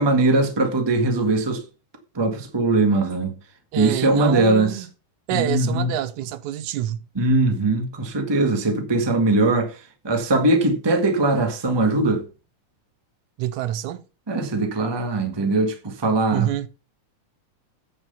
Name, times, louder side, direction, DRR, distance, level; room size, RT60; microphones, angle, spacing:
voice 1, 0.0-1.6 2.1-3.3 3.7-4.8 5.3-5.9 7.1-9.8 10.0-12.2 14.3-16.7, right 2 dB, 15° right, 0.8 m, -21 dB
voice 2, 3.7-4.9 5.3-7.1 13.4-14.0 16.3-16.7, right 12 dB, 80° right, 2.1 m, -26 dB
9.2 x 6.4 x 5.6 m
omnidirectional pair, 3.5 m